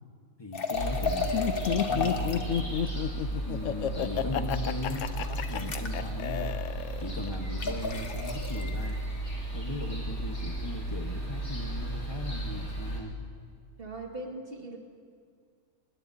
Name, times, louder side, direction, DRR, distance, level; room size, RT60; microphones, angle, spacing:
voice 1, 0.4-2.8 3.4-6.5 7.0-9.0 9.5-13.2, left 1 dB, 20° left, 3 dB, 1.2 m, -38 dB
sound 1, 0.5-2.6 4.4-6.0 7.6-8.7, left 4 dB, 45° left, 1.2 m, -33 dB
sound 2, 0.7-13.0, right 1 dB, 85° left, 3.4 m, -34 dB
Laughter, 1.3-7.3, left 9 dB, 70° left, 0.9 m, -31 dB
voice 2, 13.8-14.8, right 2 dB, 40° right, 0 dB, 2.2 m, -39 dB
25.5 x 20.5 x 2.8 m, 2.2 s
omnidirectional pair, 1.4 m